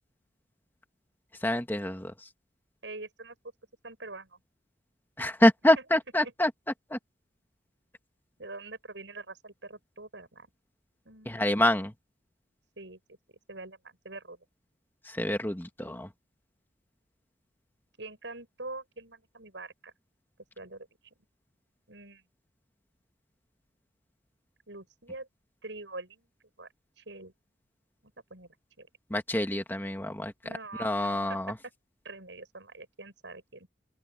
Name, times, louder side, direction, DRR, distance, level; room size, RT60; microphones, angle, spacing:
voice 1, 1.4-2.1 5.2-6.5 6.9-7.0 11.3-11.9 15.1-16.1 29.1-30.3 30.8-31.5, left 1 dB, 10° left, 2.0 m, -26 dB
voice 2, 2.8-3.4 3.8-4.4 5.8-5.9 6.2-6.3 8.4-10.5 11.0-11.4 12.8-13.0 13.5-14.4 18.0-19.9 20.6-20.9 21.9-22.2 24.7-25.3 25.6-26.3 26.6-26.7 27.0-27.3 28.0-28.5 28.8-28.9 30.4-31.4 32.0-33.7, right 3 dB, 85° right, 7.6 m, -44 dB
open air
head